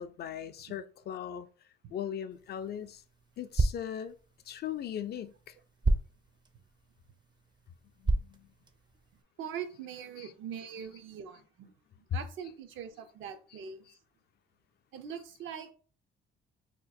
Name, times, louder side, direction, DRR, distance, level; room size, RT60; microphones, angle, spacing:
voice 1, 0.0-1.5 1.9-3.0 3.4-4.2 4.5-5.5 8.0-8.5 10.2-10.3, left 9 dB, 55° left, 0.4 m, -39 dB
sound 1, 2.3-9.2, right 2 dB, 20° right, 0.4 m, -35 dB
voice 2, 9.4-11.7 12.1-13.8 14.9-15.7, right 8 dB, 80° right, 0.6 m, -42 dB
2.9 x 2.3 x 4.1 m
cardioid pair, 90°, 20 cm